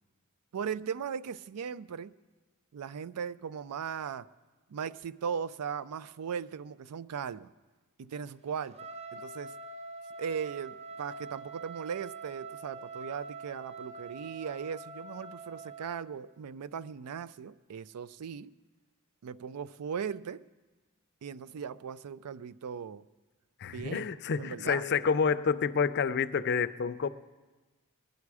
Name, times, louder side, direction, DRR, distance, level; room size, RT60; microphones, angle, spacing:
voice 1, 0.5-2.1 2.7-4.3 4.7-7.5 8.0-8.8 9.1-9.5 10.2-18.5 19.2-20.4 21.2-23.0 23.7-24.1 24.4-24.8, right 7 dB, 90° right, 0.4 m, -38 dB
Trumpet, 8.7-16.0, right 3 dB, 30° right, 0.9 m, -44 dB
voice 2, 23.6-27.1, left 6 dB, 50° left, 0.4 m, -28 dB
20.5 x 10.5 x 4.8 m
head